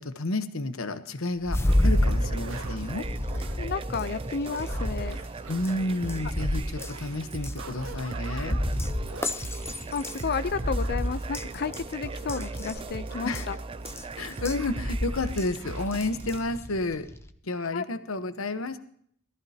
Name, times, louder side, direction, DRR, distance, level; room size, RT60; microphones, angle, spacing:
voice 1, 0.0-3.1 5.5-8.6 13.2-13.5 14.2-17.1 17.4-18.8, left 2 dB, 75° left, 10 dB, 1.0 m, -31 dB
sound 1, 1.4-17.3, left 1 dB, 10° left, 0.7 m, -31 dB
sound 2, 1.7-16.4, right 3 dB, 25° right, 0.4 m, -37 dB
Angry Dog, 1.8-15.0 15.2-15.3 15.6-15.9, right 3 dB, 75° right, 1.5 m, -46 dB
voice 2, 3.6-5.2 9.9-13.6 17.7-17.8, left 5 dB, 50° left, 13 dB, 0.5 m, -32 dB
18.0 x 14.0 x 2.8 m, 0.62 s
head